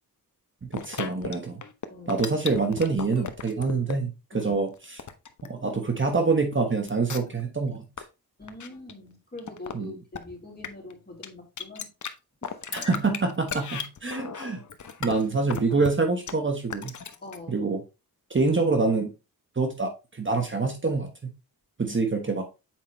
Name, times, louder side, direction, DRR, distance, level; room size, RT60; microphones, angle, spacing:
voice 1, 0.6-1.6 2.1-5.0 5.4-7.9 9.7-9.9 12.7-14.6 15.0-16.9 17.5-17.8 18.3-19.1 19.6-21.3 21.8-22.4, right 4 dB, 35° right, 1.3 m, -26 dB
sound 1, 0.7-1.4 1.6-3.9 4.4-6.0 6.5-6.6 6.9-7.4 7.7-8.0 8.4-8.9 9.4-9.7 10.1-10.2 10.6-10.9 11.2-11.3 11.6-12.1 12.4-15.9 16.3-16.4 16.7-17.4, left 7 dB, 55° left, 0.9 m, -35 dB
voice 2, 1.9-2.2 4.3-4.5 8.4-11.9 12.4-12.6 17.2-17.6, left 2 dB, 25° left, 3.3 m, -43 dB
7.5 x 4.9 x 3.1 m
cardioid pair, 80°, 36 cm